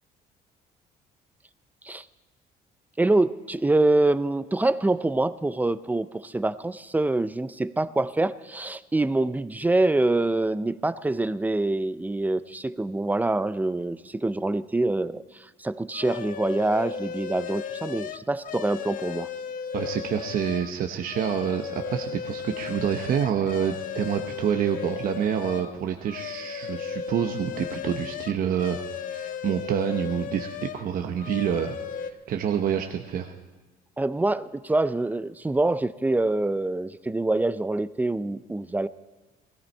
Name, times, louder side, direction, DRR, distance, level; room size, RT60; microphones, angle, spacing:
voice 1, 3.0-19.3 34.0-38.9, right 2 dB, 10° right, 15 dB, 0.4 m, -25 dB
sound 1, 15.9-20.7 21.0-25.7 26.1-30.8 31.2-32.1, left 7 dB, 55° left, 0.7 m, -35 dB
voice 2, 19.7-31.8 32.3-33.3, right 9 dB, 55° right, 5 dB, 0.9 m, -27 dB
17.0 x 15.0 x 4.4 m, 1.2 s
cardioid pair, 110°, 17 cm